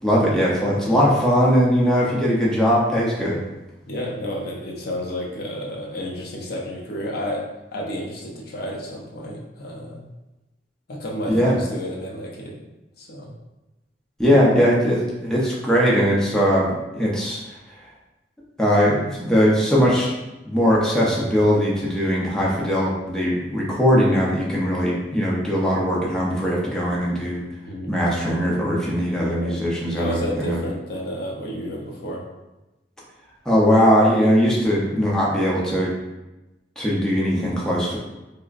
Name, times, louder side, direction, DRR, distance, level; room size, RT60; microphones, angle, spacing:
voice 1, 0.0-3.4 11.3-11.5 14.2-16.7 16.9-17.4 18.6-20.1 20.4-27.4 27.9-30.6 33.5-35.9 36.8-38.0, equal, 5° left, -6 dB, 0.6 m, -20 dB
voice 2, 3.9-7.4 7.7-10.0 10.9-12.5 13.0-13.3 27.6-27.9 29.2-29.6 30.0-32.2, equal, 60° left, -2 dB, 0.6 m, -31 dB
4.7 x 2.1 x 2.5 m, 1.0 s
head